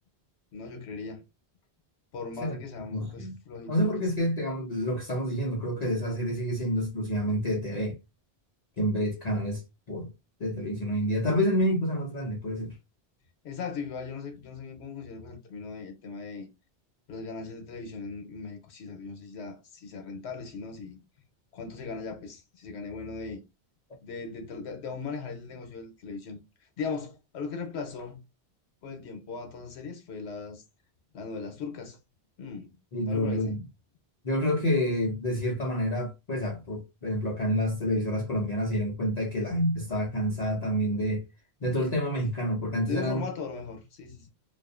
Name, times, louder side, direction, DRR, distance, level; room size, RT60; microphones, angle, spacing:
voice 1, 0.5-1.2 2.1-4.4 13.4-16.5 17.1-21.0 21.5-23.4 24.0-26.4 26.8-28.2 28.8-30.6 31.1-32.0 32.4-32.7 33.0-33.5 42.9-44.3, left 4 dB, 85° left, 1.0 m, -38 dB
voice 2, 2.9-3.3 3.7-8.0 8.8-9.6 9.9-10.1 10.4-12.8 32.9-33.6 34.2-41.2 41.6-43.3, equal, 45° left, 0.6 m, -28 dB
2.4 x 2.4 x 2.3 m
omnidirectional pair, 1.1 m